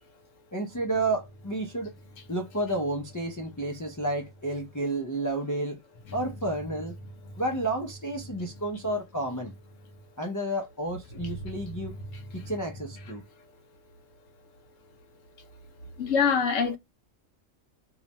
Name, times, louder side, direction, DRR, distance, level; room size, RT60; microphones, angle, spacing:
voice 1, 0.5-1.9 2.3-5.8 6.1-7.0 7.4-9.5 10.2-12.0 12.3-13.2, right 1 dB, 25° left, 0.4 m, -31 dB
voice 2, 16.0-16.8, left 6 dB, 90° left, 1.2 m, -24 dB
3.1 x 2.3 x 4.1 m
omnidirectional pair, 1.3 m